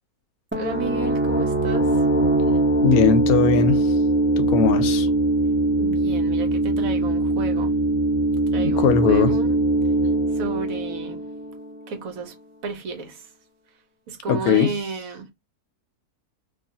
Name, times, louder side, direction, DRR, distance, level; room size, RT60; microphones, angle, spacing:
sound 1, 0.5-12.0, right 2 dB, 15° right, 0.4 m, -22 dB
voice 1, 0.5-1.9 5.8-7.8 8.5-9.6 10.3-11.2 11.9-12.3 12.6-13.3 14.1-15.3, right 4 dB, 70° right, 1.1 m, -32 dB
voice 2, 2.8-3.9 4.4-5.1 8.6-9.3 14.3-14.7, left 6 dB, 75° left, 1.0 m, -19 dB
2.5 x 2.4 x 2.7 m
omnidirectional pair, 1.6 m